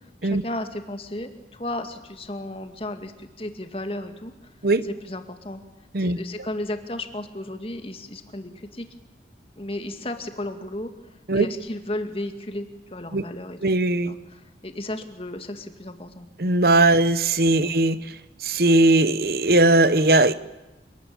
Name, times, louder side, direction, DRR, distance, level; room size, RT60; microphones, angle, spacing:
voice 1, 0.2-4.5 4.8-5.6 6.0-8.9 9.6-10.9 11.3-12.7 12.9-13.6 14.1-16.3 16.9-17.0 17.6-17.8, left 1 dB, 30° left, 7 dB, 2.1 m, -34 dB
voice 2, 13.6-14.1 16.4-18.0 18.4-20.3, right 2 dB, 55° right, 14 dB, 1.0 m, -19 dB
29.0 x 19.5 x 8.8 m, 1.0 s
head